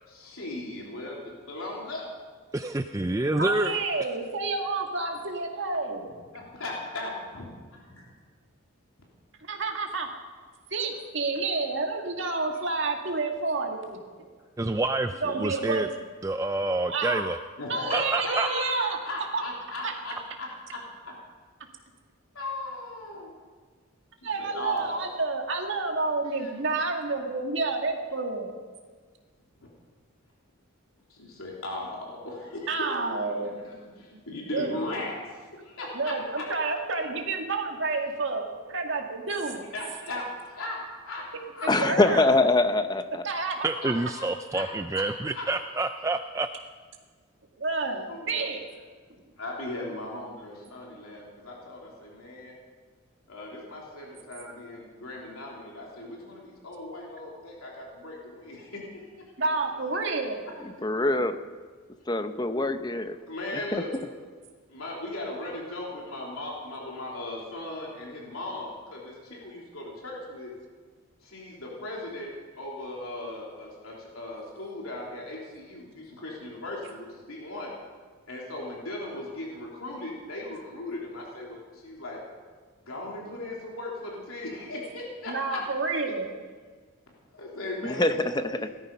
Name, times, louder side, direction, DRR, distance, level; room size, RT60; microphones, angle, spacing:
voice 1, 0.1-2.1 6.3-8.0 17.6-21.2 22.3-23.3 24.2-25.0 26.2-26.5 29.6-29.7 31.1-32.9 33.6-36.4 39.7-41.7 43.8-44.3 44.5-44.7 44.9-45.0 45.3-45.5 47.9-48.5 49.4-52.5 53.3-59.1 63.3-63.9 64.7-70.5 71.2-72.3 72.6-77.7 78.3-82.2 82.8-85.6 87.3-88.7, left 2 dB, 85° left, -3 dB, 3.5 m, -38 dB
voice 2, 2.5-3.7 14.6-15.9 16.2-17.4 17.9-18.5 43.6-46.5, right 2 dB, 15° right, 8 dB, 0.4 m, -28 dB
voice 3, 3.4-6.2 9.5-10.1 10.7-14.3 15.2-16.1 16.9-17.3 17.7-19.0 19.3-19.4 19.8-19.9 24.2-28.5 32.7-33.9 34.5-34.7 35.9-39.6 41.6-42.3 43.2-43.6 47.6-48.7 59.4-60.4 67.6-67.7 85.3-86.3, right 3 dB, 55° right, 2 dB, 2.1 m, -29 dB
voice 4, 41.7-43.2 60.8-61.4 62.1-63.2 63.5-63.8 87.8-88.7, left 2 dB, 20° left, 9 dB, 0.7 m, -24 dB
18.0 x 13.5 x 5.5 m, 1.5 s
head